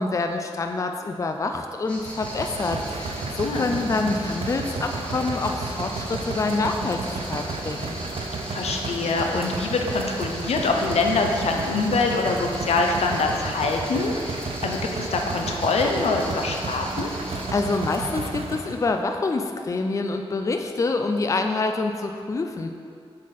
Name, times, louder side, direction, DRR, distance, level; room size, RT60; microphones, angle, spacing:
voice 1, 0.0-7.9 17.1-22.7, left 3 dB, 30° left, 5 dB, 0.4 m, -26 dB
sound 1, 1.9-18.1, equal, 10° left, 1.2 m, -40 dB
sound 2, 2.0-18.9, right 3 dB, 65° right, 0.6 m, -32 dB
voice 2, 8.5-17.1, left 3 dB, 90° left, 2 dB, 0.6 m, -24 dB
7.3 x 4.2 x 4.2 m, 2.3 s
wide cardioid pair, 105°, 10 cm